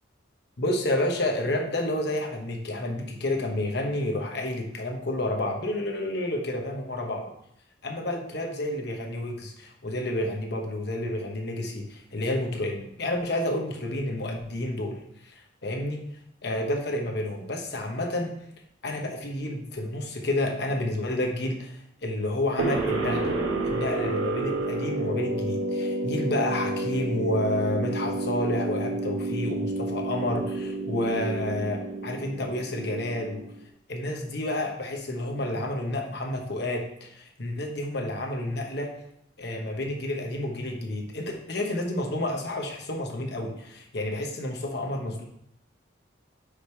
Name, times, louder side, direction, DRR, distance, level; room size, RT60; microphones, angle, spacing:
voice 1, 0.6-7.3 7.8-14.9 15.2-16.0 16.4-18.3 18.8-23.3 23.6-33.4 33.9-38.9 39.4-45.2, left 1 dB, 55° left, 2 dB, 1.1 m, -30 dB
sound 1, 22.6-33.5, right 2 dB, 90° right, 1.1 m, -30 dB
5.1 x 4.9 x 4.5 m, 0.74 s
head